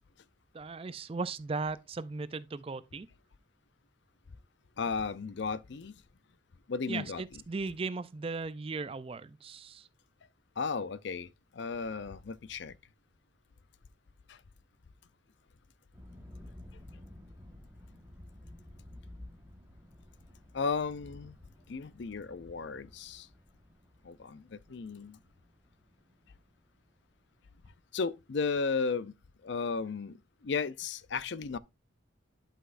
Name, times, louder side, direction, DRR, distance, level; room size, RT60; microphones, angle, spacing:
voice 1, 0.5-3.1 6.9-9.9, right 4 dB, 30° right, 0.4 m, -37 dB
voice 2, 4.8-5.9 6.7-7.4 10.6-11.3 11.5-12.8 14.3-14.4 20.5-21.4 21.7-23.3 24.0-25.2 27.9-29.1 29.4-30.2 30.4-31.6, left 5 dB, 60° left, 0.5 m, -34 dB
sound 1, 15.9-27.5, left 1 dB, 10° right, 1.3 m, -53 dB
11.0 x 5.7 x 2.5 m
head